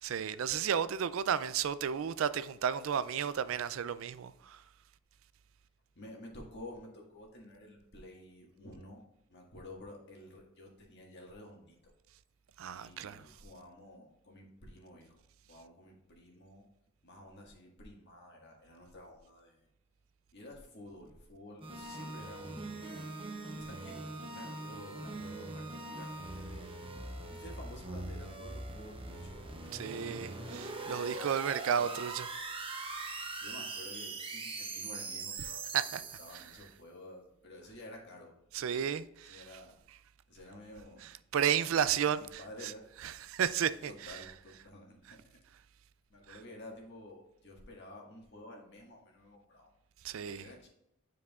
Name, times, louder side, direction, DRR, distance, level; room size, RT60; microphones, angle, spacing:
voice 1, 0.0-4.6 12.6-13.3 29.8-30.3 30.5-32.3 33.0-33.1 35.7-36.0 36.3-36.4 38.5-39.5 41.3-42.7 43.0-43.9 46.3-46.4 50.0-50.4, right 8 dB, 70° right, 0.3 m, -33 dB
voice 2, 5.9-9.0 9.3-11.8 12.7-15.2 15.5-16.7 17.0-19.7 20.3-26.8 27.3-30.6 30.8-31.3 31.7-32.0 33.4-35.6 36.2-39.0 39.2-39.8 40.3-41.1 41.8-42.9 43.9-45.4 46.1-49.7 50.2-50.7, left 1 dB, 55° left, 1.7 m, -51 dB
sound 1, 21.6-36.5, right 3 dB, 25° right, 0.7 m, -42 dB
9.2 x 4.7 x 2.4 m
head